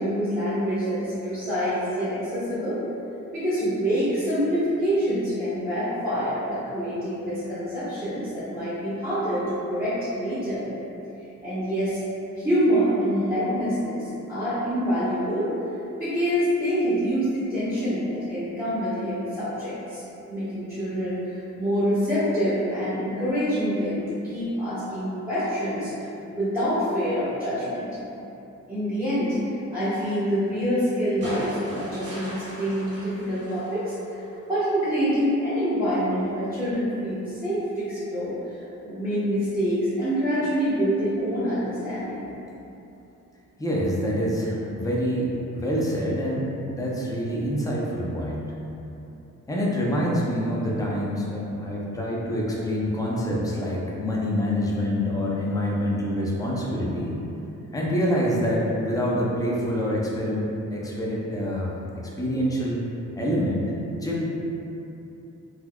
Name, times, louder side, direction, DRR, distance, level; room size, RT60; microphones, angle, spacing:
voice 1, 0.0-2.8 3.3-10.6 11.4-12.0 12.4-15.5 16.0-20.0 20.3-25.9 26.3-27.9 28.7-29.3 29.7-33.9 34.5-38.3 38.8-42.3, equal, 10° right, -17 dB, 1.1 m, -26 dB
sound 1, 31.2-34.5 35.8-35.9, equal, 55° right, 0.9 m, -39 dB
voice 2, 43.6-48.6 49.5-57.2 57.7-61.7 62.2-62.8 63.2-63.7 64.0-64.2, equal, 10° left, -5 dB, 0.4 m, -26 dB
4.0 x 3.0 x 2.2 m, 2.9 s
wide cardioid pair, 150°, 30 cm